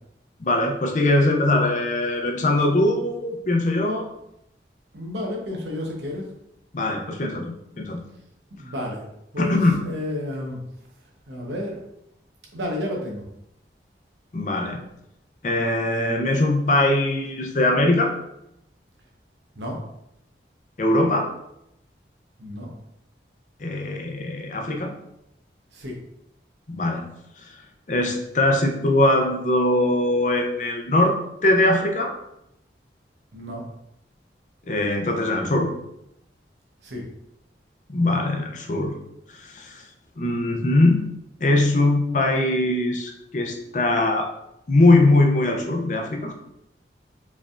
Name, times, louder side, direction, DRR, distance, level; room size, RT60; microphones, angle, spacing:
voice 1, 0.4-4.1 6.7-8.0 9.4-9.7 14.3-14.8 15.4-18.1 20.8-21.3 23.6-24.9 26.7-27.1 27.9-31.2 31.4-32.1 34.7-35.7 37.9-39.0 39.3-39.8 40.2-41.1 41.4-44.3 44.7-46.3, left 2 dB, 45° left, 3 dB, 0.5 m, -21 dB
voice 2, 4.9-6.3 8.5-9.0 9.3-10.6 11.3-11.8 12.5-13.2 19.6-19.8 22.4-22.7 25.7-26.0 33.3-33.7 36.8-37.0, left 1 dB, 75° right, 0 dB, 1.0 m, -31 dB
4.6 x 3.3 x 2.4 m, 0.81 s
head